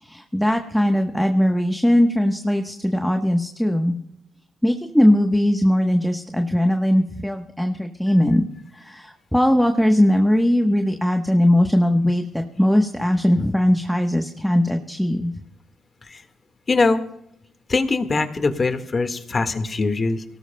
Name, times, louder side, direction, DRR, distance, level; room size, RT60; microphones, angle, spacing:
voice 1, 0.0-3.9 4.6-8.5 8.7-15.3, left 1 dB, 5° left, 4 dB, 1.1 m, -19 dB
voice 2, 16.7-17.0 17.7-20.2, left 3 dB, 35° left, 7 dB, 1.7 m, -22 dB
25.0 x 18.0 x 2.3 m, 0.75 s
cardioid pair, 80°, 0 cm